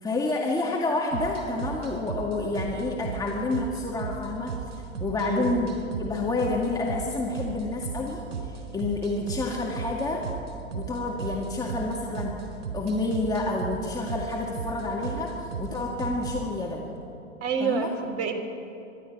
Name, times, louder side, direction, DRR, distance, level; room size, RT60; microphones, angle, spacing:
voice 1, 0.0-4.6 5.0-5.7 6.0-10.3 10.7-12.3 12.7-16.9 17.6-17.9, left 2 dB, 10° left, -1 dB, 2.0 m, -29 dB
sound 1, 1.1-16.5, right 6 dB, 65° right, 4.1 m, -36 dB
voice 2, 5.2-5.6 17.4-18.3, right 5 dB, 35° right, 3 dB, 3.0 m, -28 dB
23.5 x 12.5 x 9.1 m, 2.8 s
hypercardioid pair, 105°, 38 cm